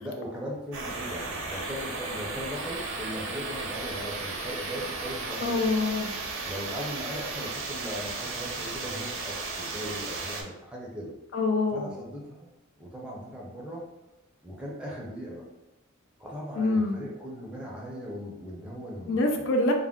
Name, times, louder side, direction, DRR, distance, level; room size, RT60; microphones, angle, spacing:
voice 1, 0.0-5.7 6.4-11.1 11.7-12.5 12.8-13.9 14.4-15.4 16.2-19.4, equal, 5° right, -4 dB, 0.5 m, -38 dB
sound 1, 0.7-10.4, right 3 dB, 80° right, 0.5 m, -35 dB
voice 2, 5.4-6.1 11.3-11.9 16.6-16.9 19.1-19.7, left 2 dB, 65° left, 4 dB, 0.4 m, -25 dB
2.4 x 2.1 x 3.5 m, 0.97 s
head